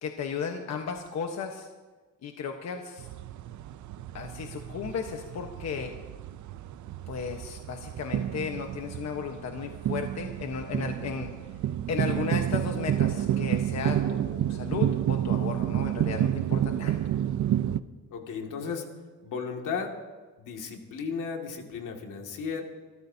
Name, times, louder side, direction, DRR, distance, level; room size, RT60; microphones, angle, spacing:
voice 1, 0.0-1.7 2.2-3.1 4.1-5.9 7.1-11.3 11.9-17.0, left 6 dB, 60° left, 3 dB, 1.2 m, -35 dB
sound 1, 3.0-17.8, right 11 dB, 65° right, 0.6 m, -30 dB
voice 2, 18.1-18.9 19.2-20.0 20.4-22.6, left 5 dB, 80° left, 2 dB, 2.2 m, -34 dB
26.0 x 14.0 x 2.8 m, 1.3 s
cardioid pair, 145°, 31 cm